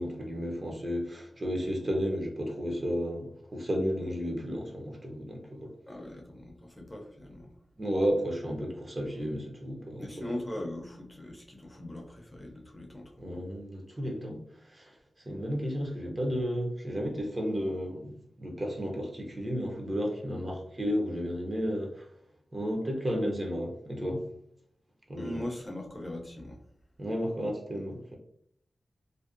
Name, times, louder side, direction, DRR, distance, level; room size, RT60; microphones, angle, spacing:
voice 1, 0.0-5.7 7.8-10.3 13.2-15.0 15.3-22.1 22.5-24.2 25.1-25.4 27.0-28.2, equal, 35° right, 0 dB, 0.6 m, -33 dB
voice 2, 5.9-7.5 10.0-13.1 25.2-26.6, left 1 dB, 15° left, 0 dB, 0.5 m, -40 dB
2.5 x 2.0 x 2.4 m, 0.69 s
wide cardioid pair, 85°, 0 cm